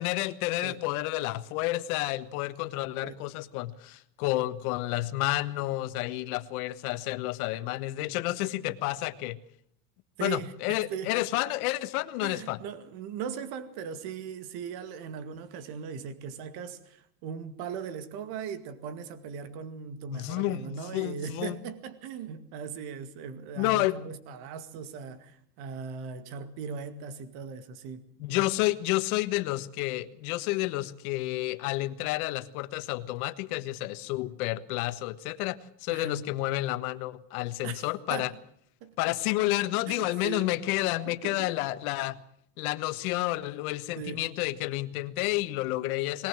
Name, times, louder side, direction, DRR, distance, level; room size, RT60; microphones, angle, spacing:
voice 1, 0.0-9.4 10.2-12.6 20.1-21.6 23.6-24.0 28.2-38.3 39.0-42.2 42.6-46.3, left 17 dB, 75° left, 1.5 m, -30 dB
voice 2, 10.2-11.1 12.2-28.5 35.9-36.3 37.6-38.3 38.8-39.2 39.9-40.6 41.1-41.5 44.0-44.3, right 6 dB, 55° right, 2.2 m, -39 dB
21.0 x 19.0 x 7.6 m
supercardioid pair, 145°, 44 cm